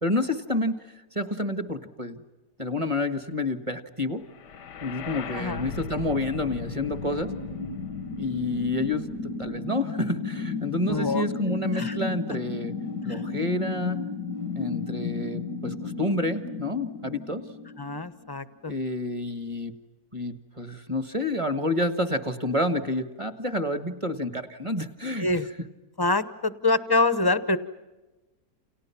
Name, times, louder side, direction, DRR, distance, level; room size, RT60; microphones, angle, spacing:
voice 1, 0.0-0.8 1.1-2.2 2.6-4.2 4.8-7.3 8.2-9.1 9.4-12.7 13.0-14.0 14.5-17.4 18.7-19.7 20.1-25.3, left 1 dB, 20° right, 9 dB, 1.5 m, -29 dB
sound 1, 4.4-18.4, left 4 dB, 85° left, 1.6 m, -34 dB
voice 2, 10.9-11.2 11.7-12.0 13.1-13.2 17.8-18.7 25.2-25.5 26.0-27.6, left 2 dB, 20° left, 12 dB, 0.8 m, -25 dB
29.5 x 29.5 x 5.9 m, 1.1 s
omnidirectional pair, 1.8 m